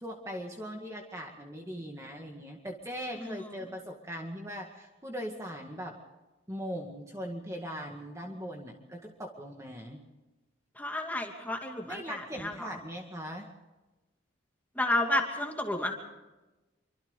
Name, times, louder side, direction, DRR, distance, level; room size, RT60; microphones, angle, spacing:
voice 1, 0.0-6.0 6.5-10.0 11.9-13.5, equal, 15° right, 1 dB, 2.0 m, -40 dB
voice 2, 3.2-3.6 10.8-12.7 14.8-16.0, left 1 dB, 10° left, 2 dB, 2.7 m, -31 dB
26.5 x 25.0 x 4.0 m, 1.1 s
head